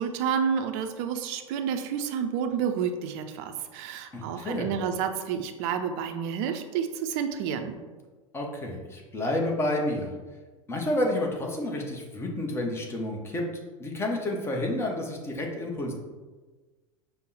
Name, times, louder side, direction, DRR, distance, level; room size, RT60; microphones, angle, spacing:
voice 1, 0.0-7.8, right 7 dB, 45° right, 7 dB, 0.4 m, -30 dB
voice 2, 4.1-4.7 8.3-10.1 10.7-15.9, left 1 dB, 15° left, 0 dB, 0.7 m, -30 dB
5.3 x 2.1 x 3.9 m, 1.3 s
figure-of-eight pair, 85°, 17 cm